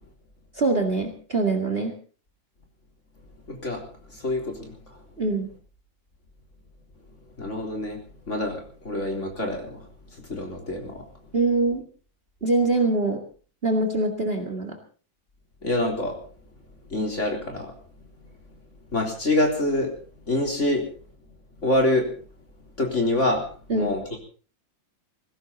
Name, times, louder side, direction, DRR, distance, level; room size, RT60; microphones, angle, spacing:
voice 1, 0.6-2.0 5.2-5.5 11.3-11.8 12.4-13.2 13.6-14.8 23.7-23.9, right 2 dB, 30° right, 6 dB, 2.2 m, -23 dB
voice 2, 3.5-5.0 7.4-8.0 8.3-11.0 15.6-16.2 16.9-17.7 18.9-19.9 20.3-20.9 21.6-22.1 22.8-24.2, left 1 dB, 35° left, 1 dB, 4.1 m, -26 dB
20.0 x 16.0 x 4.1 m, 0.39 s
omnidirectional pair, 2.1 m